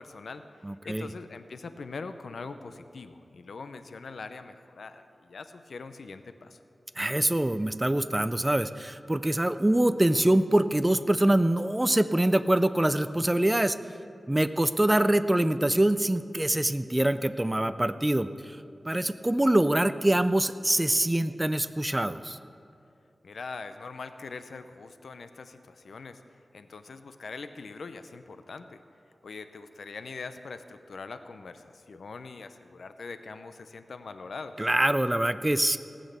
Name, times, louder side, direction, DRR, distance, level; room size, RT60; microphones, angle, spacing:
voice 1, 0.0-0.5 0.8-6.6 23.2-26.2 26.5-28.8 29.2-34.7, left 4 dB, 80° left, 10 dB, 0.6 m, -42 dB
voice 2, 0.6-1.1 7.0-13.8 14.3-18.6 18.9-22.4 34.6-35.8, right 1 dB, 15° right, 12 dB, 0.4 m, -24 dB
18.0 x 6.4 x 8.0 m, 2.5 s
wide cardioid pair, 105°, 0 cm